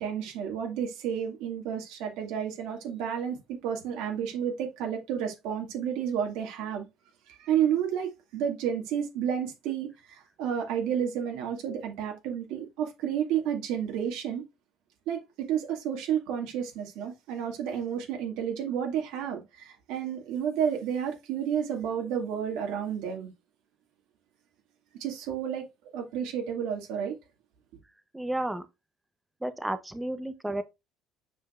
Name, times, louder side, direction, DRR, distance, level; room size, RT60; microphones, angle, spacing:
voice 1, 0.0-6.9 7.3-14.4 15.1-23.3 25.0-25.6 25.9-27.1, right 8 dB, 85° right, 2.2 m, -31 dB
voice 2, 28.1-28.6 29.4-30.6, right 1 dB, 5° right, 0.9 m, -32 dB
7.5 x 5.3 x 2.5 m
cardioid pair, 125°, 0 cm